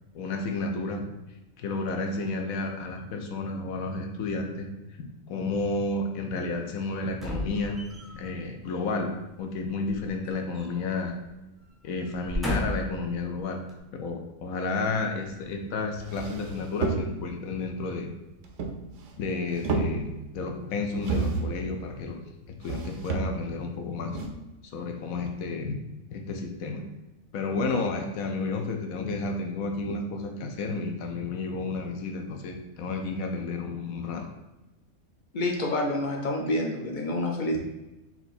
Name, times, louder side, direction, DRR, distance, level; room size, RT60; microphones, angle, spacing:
voice 1, 0.1-1.0 1.6-4.7 5.3-7.8 8.1-9.1 9.4-11.1 11.8-13.6 13.9-18.1 19.2-22.2 22.5-24.2 24.7-25.8 26.1-26.8 27.3-34.3, left 3 dB, 80° left, 3 dB, 1.1 m, -31 dB
sound 1, 7.1-8.3 9.8-11.0 11.3-11.5 12.1-13.0 13.7-13.8, left 1 dB, ahead, 0.6 m, -33 dB
sound 2, 15.5-15.6 16.0-17.4 18.4-19.2 19.5-20.3 21.0-21.6 22.6-23.6 24.1-24.3, right 4 dB, 65° right, 0.9 m, -31 dB
voice 2, 35.3-37.7, left 1 dB, 60° left, 0 dB, 0.5 m, -28 dB
4.4 x 2.7 x 4.1 m, 0.99 s
omnidirectional pair, 1.4 m